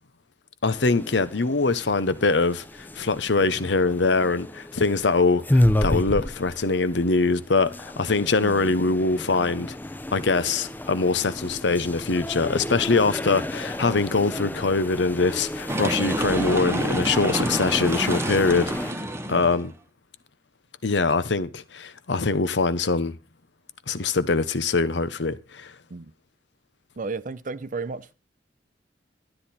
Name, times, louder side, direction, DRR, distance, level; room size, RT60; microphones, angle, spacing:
voice 1, 0.6-9.8 10.1-18.7 19.3-19.7 20.8-23.2 23.9-25.7, left 3 dB, 75° left, 0.9 m, -23 dB
sound 1, 0.7-18.9, left 1 dB, 10° left, 0.6 m, -31 dB
voice 2, 8.4-8.7 25.9-26.1 27.0-28.1, right 4 dB, 45° right, 0.6 m, -34 dB
sound 2, 15.7-19.6, right 1 dB, 15° right, 1.1 m, -28 dB
12.5 x 9.9 x 4.3 m
head